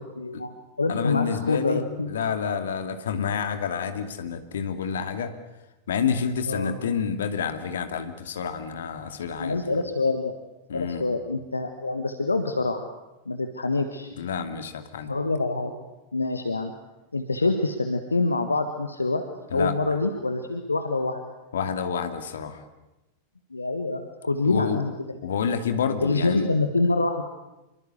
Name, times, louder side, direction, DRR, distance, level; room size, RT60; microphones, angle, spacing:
voice 1, 0.1-2.1 6.5-6.8 9.4-10.4 10.7-12.8 13.2-14.1 15.1-15.7 16.1-16.7 17.1-19.2 19.5-21.3 23.5-25.2 26.0-27.2, left 3 dB, 80° left, 7 dB, 1.6 m, -26 dB
voice 2, 0.9-5.3 5.9-9.6 10.7-11.0 14.2-15.1 19.5-19.7 21.5-22.7 24.4-24.8 25.2-26.5, left 7 dB, 65° left, 8 dB, 2.5 m, -28 dB
26.5 x 23.0 x 8.3 m, 0.99 s
figure-of-eight pair, 90°, 0 cm